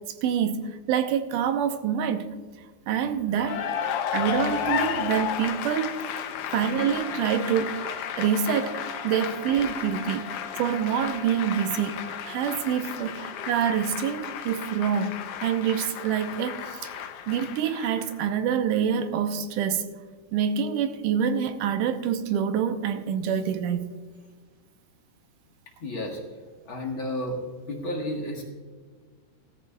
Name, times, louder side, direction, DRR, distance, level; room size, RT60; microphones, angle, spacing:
voice 1, 0.2-0.6 0.9-2.3 2.9-3.7 4.1-6.0 6.5-7.8 8.2-15.1 15.4-16.9 17.3-19.9 20.3-23.9, right 8 dB, 90° right, 2.4 m, -26 dB
Cheering / Applause, 3.3-18.3, left 9 dB, 80° left, 1.3 m, -33 dB
voice 2, 6.3-6.6 25.8-26.2 26.7-28.5, left 1 dB, 50° left, 1.9 m, -32 dB
Trumpet, 6.7-12.7, left 1 dB, 45° right, 5.4 m, -45 dB
17.0 x 13.5 x 2.3 m
omnidirectional pair, 3.6 m